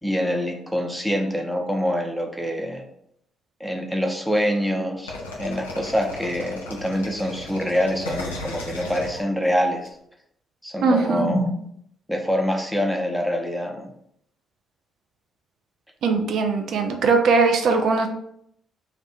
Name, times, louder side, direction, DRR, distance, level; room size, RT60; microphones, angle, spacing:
voice 1, 0.0-2.9 3.6-9.9 10.6-11.7 12.1-13.9, equal, ahead, 3 dB, 0.6 m, -25 dB
sound 1, 5.1-9.9, left 2 dB, 85° left, 0.4 m, -35 dB
voice 2, 10.8-11.3 16.0-18.1, right 4 dB, 60° right, 5 dB, 0.3 m, -20 dB
2.6 x 2.1 x 4.0 m, 0.72 s
hypercardioid pair, 45°, 0 cm